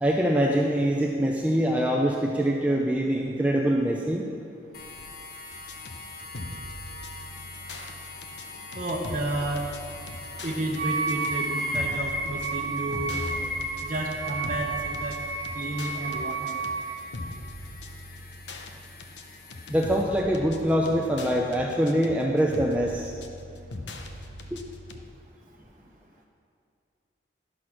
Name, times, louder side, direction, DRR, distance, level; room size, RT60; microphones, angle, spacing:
voice 1, 0.0-4.3 19.7-23.1 24.5-24.6, equal, 10° right, -1 dB, 0.5 m, -24 dB
sound 1, 4.7-20.0, left 3 dB, 55° left, 1.1 m, -45 dB
sound 2, 5.5-25.0, left 1 dB, 85° left, 0.8 m, -41 dB
voice 2, 8.7-9.7 10.4-13.2 13.8-15.2 15.5-16.6, right 1 dB, 45° right, -3 dB, 0.9 m, -31 dB
Wind instrument woodwind instrument, 10.8-17.1, right 3 dB, 70° right, 1.0 m, -31 dB
11.5 x 6.3 x 6.0 m, 2.4 s
head